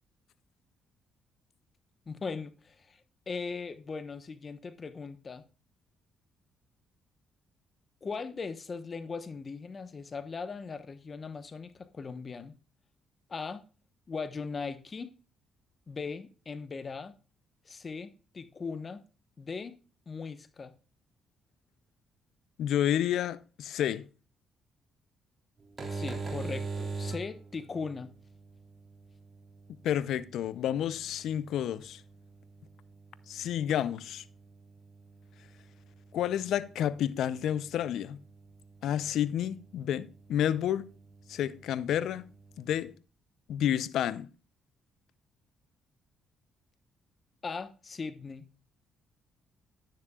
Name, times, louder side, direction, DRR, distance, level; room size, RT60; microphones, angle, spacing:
voice 1, 2.1-3.0 3.3-5.4 8.0-12.5 13.3-13.6 14.1-15.1 15.9-17.1 17.7-19.0 19.4-19.7 20.1-20.7 25.9-28.1 47.4-48.4, left 4 dB, 40° left, 1.0 m, -39 dB
voice 2, 22.6-24.0 29.8-32.0 33.3-34.2 36.1-38.2 38.8-40.9 41.3-42.3 42.6-42.9 43.5-44.3, left 10 dB, 70° left, 0.5 m, -30 dB
sound 1, 25.6-42.9, right 4 dB, 45° right, 2.8 m, -45 dB
10.5 x 9.9 x 2.3 m
hypercardioid pair, 50°, 0 cm